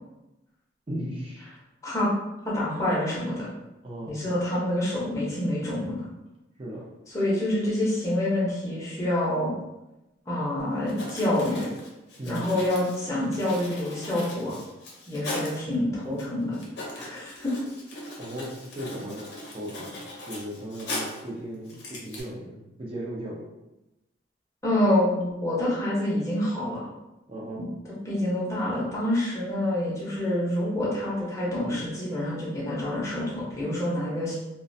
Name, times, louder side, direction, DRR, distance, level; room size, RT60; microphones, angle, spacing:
voice 1, 0.9-1.5 3.8-4.2 6.6-6.9 12.2-12.5 18.2-19.3 19.5-20.0 20.3-23.4 27.3-27.7, right 1 dB, 30° right, -5 dB, 0.5 m, -36 dB
voice 2, 2.4-3.5 4.1-6.1 7.1-9.5 10.3-11.7 12.3-14.6 15.1-16.6 16.9-17.5 24.6-26.8 27.6-27.7 28.0-34.4, left 1 dB, 15° left, -7 dB, 0.6 m, -27 dB
Writing, 10.9-15.6 16.2-16.3 16.5-21.3 21.7-22.2, left 1 dB, 60° left, 0.6 m, -38 dB
2.4 x 2.1 x 2.6 m, 0.98 s
head